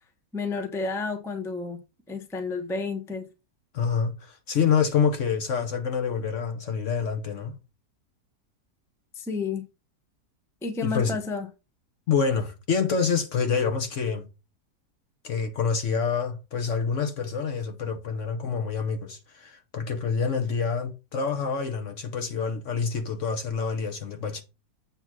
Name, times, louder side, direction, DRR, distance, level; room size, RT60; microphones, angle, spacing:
voice 1, 0.3-1.8 2.1-3.3 9.1-9.6 10.6-11.5, left 4 dB, 5° left, 0.6 m, -31 dB
voice 2, 3.7-7.6 10.8-11.2 12.1-14.2 15.2-24.4, left 6 dB, 55° left, 1.1 m, -27 dB
8.0 x 2.9 x 6.0 m
omnidirectional pair, 1.7 m